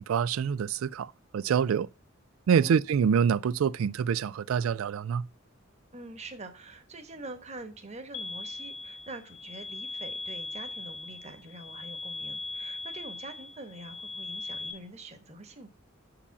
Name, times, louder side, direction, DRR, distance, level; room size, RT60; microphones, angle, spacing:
voice 1, 0.0-1.9 2.5-5.3, right 7 dB, 90° right, 0.3 m, -26 dB
voice 2, 5.9-15.7, right 2 dB, 35° right, 1.1 m, -45 dB
sound 1, 8.1-14.7, left 3 dB, 80° left, 1.2 m, -39 dB
6.8 x 5.0 x 7.0 m
head